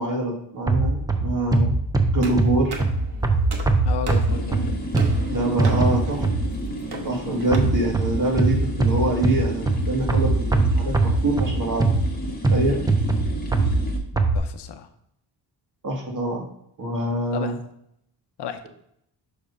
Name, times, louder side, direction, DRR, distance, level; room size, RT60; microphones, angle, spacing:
voice 1, 0.0-1.8 2.1-2.8 5.3-6.2 7.0-11.8 12.5-12.8 15.8-16.4 16.8-17.5, right 2 dB, 45° right, -1 dB, 2.1 m, -25 dB
sound 1, 0.7-6.7 7.5-14.4, right 2 dB, 10° right, 0.6 m, -22 dB
sound 2, 2.2-7.6, right 4 dB, 60° right, 1.2 m, -38 dB
voice 2, 3.8-4.8 14.3-14.9 17.3-17.6 18.4-18.7, left 8 dB, 65° left, 8 dB, 0.8 m, -33 dB
sound 3, 4.3-14.0, equal, 20° left, 1.4 m, -34 dB
6.4 x 3.2 x 5.2 m, 0.72 s
cardioid pair, 110°, 44 cm